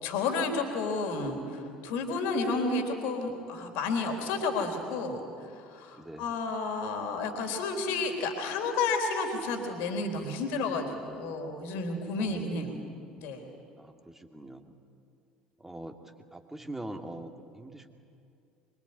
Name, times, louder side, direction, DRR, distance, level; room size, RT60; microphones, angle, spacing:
voice 1, 0.0-5.2 5.5-12.8 13.2-13.4, left 3 dB, 55° left, 4 dB, 3.7 m, -31 dB
voice 2, 6.0-6.4 12.2-12.4 13.8-14.7 15.6-16.0 16.3-17.9, right 1 dB, 10° right, 4 dB, 2.4 m, -43 dB
24.5 x 24.0 x 9.7 m, 2.4 s
figure-of-eight pair, 65°, 4 cm